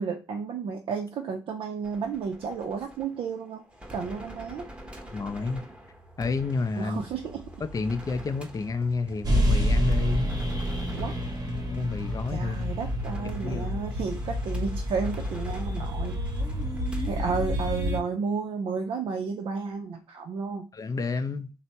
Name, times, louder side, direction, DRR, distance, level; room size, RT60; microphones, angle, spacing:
voice 1, 0.0-3.6 3.9-4.7 6.8-7.4 10.9-11.2 12.3-16.2 17.1-20.7, right 5 dB, 70° right, 0.4 m, -32 dB
sound 1, 1.8-17.2, right 1 dB, 10° right, 0.8 m, -45 dB
voice 2, 5.1-5.6 6.2-7.0 7.6-10.3 11.7-12.7 13.2-13.8 20.7-21.5, left 4 dB, 40° left, 0.4 m, -30 dB
sound 2, 9.2-18.0, equal, 45° right, 0.8 m, -28 dB
3.2 x 2.0 x 2.7 m
supercardioid pair, 50°, 9 cm